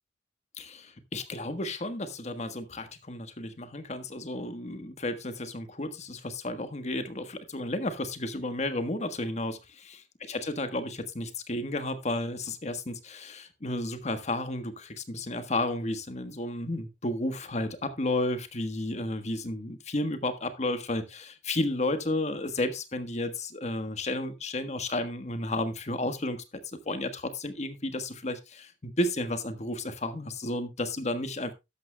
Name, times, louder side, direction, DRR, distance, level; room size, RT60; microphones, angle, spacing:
voice 1, 0.6-9.6 10.3-26.4 26.9-31.5, left 1 dB, 40° left, 10 dB, 1.3 m, -32 dB
13.0 x 11.0 x 2.2 m, 0.23 s
head